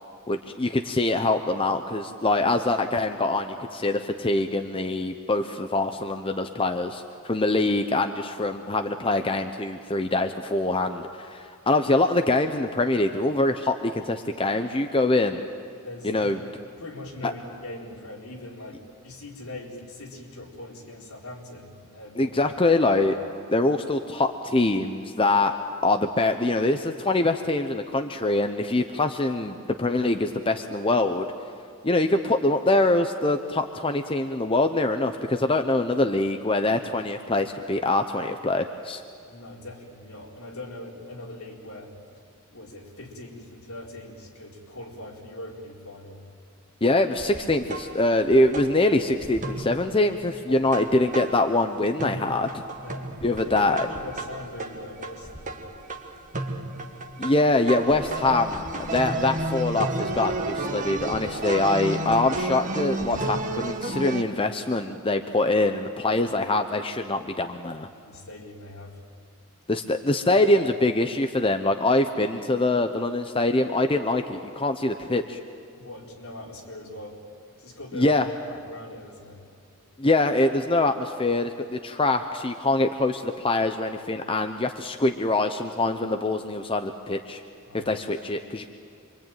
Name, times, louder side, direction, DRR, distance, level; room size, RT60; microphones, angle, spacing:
voice 1, 0.3-15.4 16.0-16.4 17.2-17.3 22.2-23.2 23.5-25.5 25.8-31.3 31.8-39.0 46.8-52.6 53.2-53.9 57.2-67.9 69.7-75.4 77.9-78.2 80.0-87.4 87.7-88.7, left 2 dB, 25° left, 6 dB, 0.8 m, -24 dB
voice 2, 15.8-16.3 16.8-22.5 39.3-42.0 42.5-46.3 50.5-50.6 52.8-55.6 68.0-69.1 75.7-77.3 77.6-79.4 87.6-87.9, left 1 dB, 70° left, -1 dB, 4.4 m, -41 dB
sound 1, 47.2-51.7 52.0-64.2, right 2 dB, 35° right, 1.7 m, -32 dB
27.0 x 23.5 x 9.1 m, 2.4 s
head